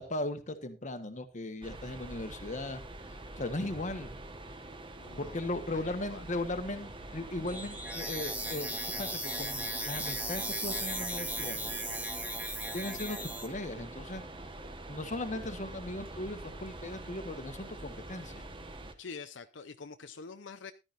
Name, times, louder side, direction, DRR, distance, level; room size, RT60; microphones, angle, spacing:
voice 1, 0.0-2.8 3.1-4.2 5.2-11.6 12.7-14.2 14.9-18.3, left 2 dB, 40° left, 9 dB, 1.4 m, -38 dB
sound 1, 1.6-18.9, right 2 dB, 30° right, 1.3 m, -45 dB
voice 2, 5.0-6.3 19.0-20.7, left 5 dB, 80° left, 9 dB, 0.7 m, -46 dB
sound 2, 7.5-13.5, right 1 dB, 10° right, 1.8 m, -36 dB
14.5 x 11.5 x 2.6 m, 0.25 s
head